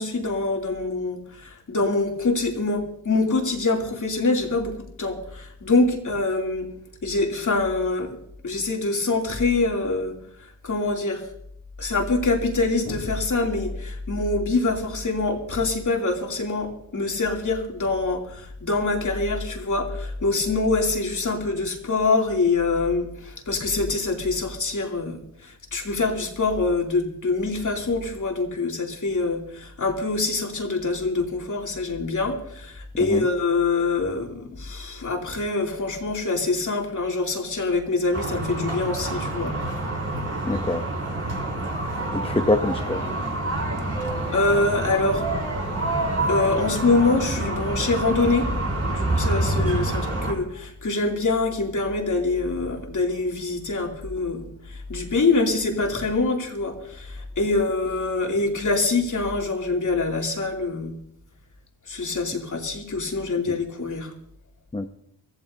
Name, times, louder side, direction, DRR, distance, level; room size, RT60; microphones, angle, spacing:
voice 1, 0.0-6.7 7.0-8.2 8.4-10.1 10.6-11.2 11.8-39.5 44.0-45.3 46.3-48.5 48.9-61.0 61.9-64.1, left 3 dB, 50° left, 0 dB, 2.8 m, -25 dB
sound 1, 38.1-50.3, right 2 dB, 35° right, 3.9 m, -27 dB
voice 2, 40.4-40.8 42.1-43.1 63.5-63.6 64.7-64.9, left 2 dB, 15° left, 5 dB, 0.6 m, -24 dB
25.0 x 15.0 x 2.7 m, 0.74 s
wide cardioid pair, 140°, 40 cm